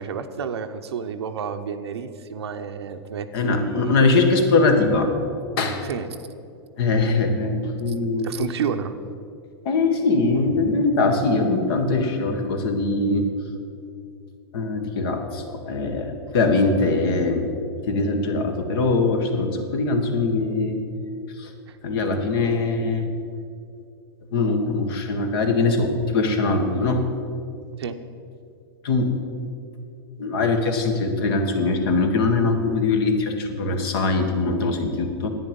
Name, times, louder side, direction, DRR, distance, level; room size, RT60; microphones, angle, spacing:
voice 1, 0.0-4.0 5.8-6.1 7.9-8.0 8.2-8.9 15.9-16.1 21.7-21.8 27.8-28.0, right 7 dB, 85° right, 7 dB, 0.7 m, -30 dB
voice 2, 3.3-5.1 5.6-5.8 6.8-8.3 9.6-13.3 14.5-17.5 17.8-20.8 21.4-21.5 21.8-23.1 24.3-27.0 28.8-29.2 30.2-35.3, left 3 dB, 65° left, 5 dB, 1.6 m, -22 dB
10.5 x 9.3 x 5.3 m, 2.5 s
hypercardioid pair, 115°, 14 cm